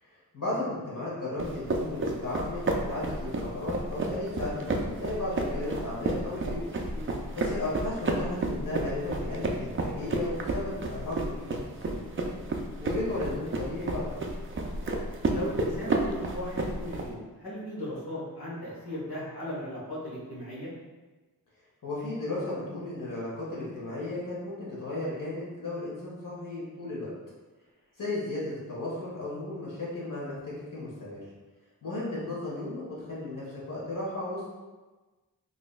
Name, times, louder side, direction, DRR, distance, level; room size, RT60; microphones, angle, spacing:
voice 1, 0.0-6.7 7.3-11.5 11.8-12.0 12.8-14.1 21.8-27.1 28.0-31.2 31.8-34.5, left 2 dB, 60° left, -6 dB, 1.4 m, -35 dB
sound 1, 1.4-17.1, right 2 dB, 35° right, 0.4 m, -31 dB
voice 2, 15.3-20.7, equal, 85° left, -9 dB, 1.2 m, -37 dB
3.9 x 2.7 x 2.3 m, 1.3 s
wide cardioid pair, 80°, 37 cm